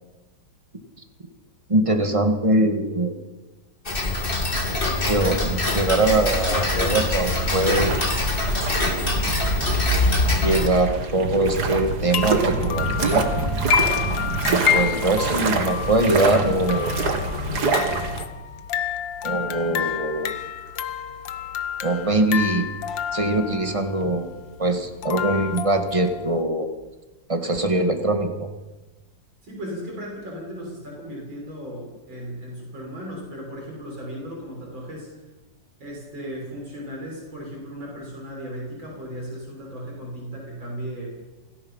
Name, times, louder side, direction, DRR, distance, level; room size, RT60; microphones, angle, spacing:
voice 1, 1.7-3.1 5.1-8.1 8.8-8.9 10.4-13.3 14.5-16.9 19.2-20.3 21.8-22.7 23.1-24.3 24.6-26.7 27.3-28.5, right 2 dB, 15° right, 5 dB, 2.1 m, -22 dB
Tick-tock, 3.9-10.7, left 2 dB, 30° left, 2.8 m, -23 dB
sound 1, 7.5-18.2, right 3 dB, 60° right, 2.4 m, -26 dB
sound 2, 12.1-26.4, left 9 dB, 80° left, 1.7 m, -29 dB
voice 2, 29.4-35.1 35.8-41.2, equal, 85° right, -2 dB, 7.1 m, -36 dB
28.0 x 19.0 x 5.7 m, 1.1 s
omnidirectional pair, 2.0 m